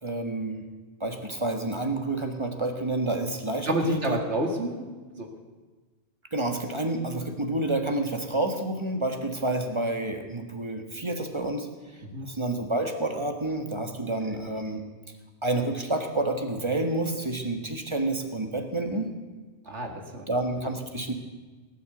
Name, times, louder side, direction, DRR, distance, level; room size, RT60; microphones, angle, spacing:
voice 1, 0.0-0.6 1.0-4.2 6.3-14.8 15.4-19.1 20.3-21.1, right 2 dB, 25° right, 5 dB, 1.6 m, -29 dB
voice 2, 3.7-5.3 12.0-12.3 14.3-14.4 19.7-20.3, right 1 dB, 80° right, 3 dB, 2.4 m, -29 dB
18.0 x 9.7 x 7.9 m, 1.3 s
omnidirectional pair, 1.2 m